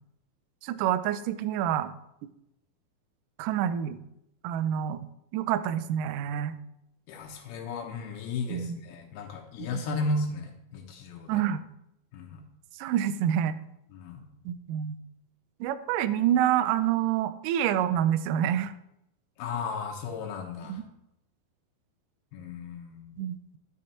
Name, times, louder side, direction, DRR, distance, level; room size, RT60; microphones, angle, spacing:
voice 1, 0.6-1.9 3.4-4.0 4.4-5.1 5.3-6.5 8.5-8.8 9.7-10.0 11.3-11.6 12.8-13.6 14.5-15.0 15.6-18.7 20.7-20.8 23.2-23.6, right 10 dB, 80° right, 11 dB, 1.9 m, -27 dB
voice 2, 7.1-11.4 12.1-12.4 13.9-14.3 19.4-20.8 22.3-23.1, left 3 dB, 90° left, 1 dB, 3.0 m, -35 dB
11.0 x 6.5 x 4.3 m, 0.81 s
omnidirectional pair, 4.3 m